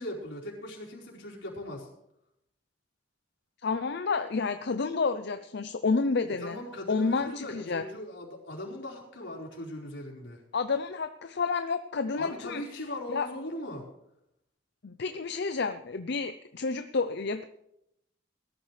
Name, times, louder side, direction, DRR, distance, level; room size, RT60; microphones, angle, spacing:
voice 1, 0.0-1.9 6.4-10.4 12.2-13.9, left 1 dB, 85° left, -3 dB, 4.7 m, -39 dB
voice 2, 3.6-6.6 6.9-7.8 10.5-12.6 13.1-13.3 14.8-17.5, left 4 dB, 65° left, 9 dB, 0.6 m, -30 dB
20.0 x 13.0 x 3.3 m, 0.80 s
head